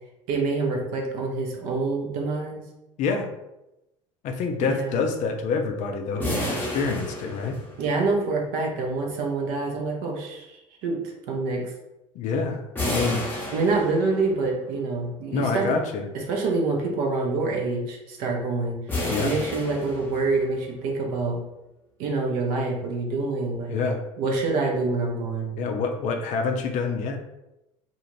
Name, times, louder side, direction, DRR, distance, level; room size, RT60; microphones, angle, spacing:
voice 1, 0.3-2.6 4.6-5.0 7.8-11.0 11.3-11.7 13.5-15.8 16.1-18.8 19.2-21.4 22.0-23.8 24.2-25.7, right 3 dB, 55° right, 0 dB, 0.7 m, -26 dB
voice 2, 4.2-7.6 12.2-13.2 15.3-16.1 19.1-19.3 23.7-24.0 25.6-27.2, left 4 dB, 45° left, 5 dB, 0.4 m, -27 dB
sound 1, 6.2-8.1 12.8-14.4 18.9-20.5, left 1 dB, 10° left, 0.8 m, -31 dB
2.4 x 2.4 x 3.1 m, 0.93 s
figure-of-eight pair, 65°, 17 cm